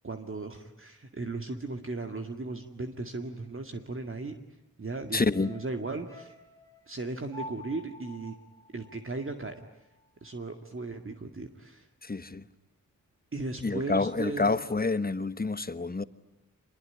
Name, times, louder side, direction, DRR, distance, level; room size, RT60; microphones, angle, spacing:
voice 1, 0.0-4.3 4.8-6.3 6.9-8.4 8.7-9.6 10.2-11.9 13.3-14.6, right 3 dB, 35° right, 2.2 m, -36 dB
voice 2, 5.1-5.5 12.0-12.4 13.6-16.0, left 3 dB, 25° left, 1.2 m, -28 dB
sound 1, 5.3-9.7 10.0-10.1, left 1 dB, 10° left, 3.4 m, -48 dB
27.0 x 22.0 x 9.8 m
wide cardioid pair, 80°, 35 cm